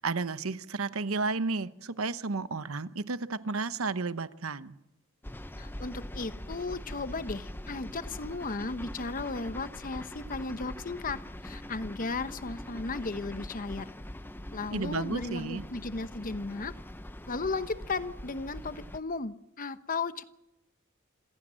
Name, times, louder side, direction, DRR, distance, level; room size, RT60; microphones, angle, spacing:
voice 1, 0.0-4.7 14.7-15.6, right 3 dB, 85° right, 13 dB, 1.0 m, -32 dB
sound 1, 5.2-19.0, left 1 dB, 10° left, 0.7 m, -43 dB
voice 2, 5.6-13.9 14.5-16.7 17.3-20.2, left 3 dB, 40° left, 12 dB, 1.0 m, -35 dB
27.0 x 16.5 x 7.6 m, 0.91 s
head